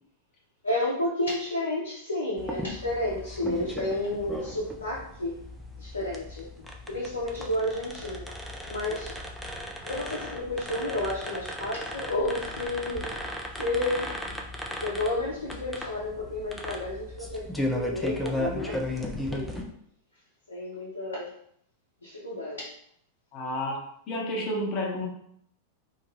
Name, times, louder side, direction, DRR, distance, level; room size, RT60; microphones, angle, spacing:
voice 1, 0.6-5.4 5.8-8.2 8.7-9.2 9.8-13.3 13.6-14.1 14.7-19.6 20.5-21.4 22.0-22.7, left 1 dB, 75° left, -5 dB, 0.5 m, -31 dB
sound 1, 2.4-19.6, left 1 dB, 5° left, 0.4 m, -36 dB
voice 2, 23.3-23.8 24.1-25.1, left 1 dB, 35° left, -2 dB, 0.8 m, -30 dB
2.3 x 2.2 x 3.1 m, 0.68 s
figure-of-eight pair, 90°, 0 cm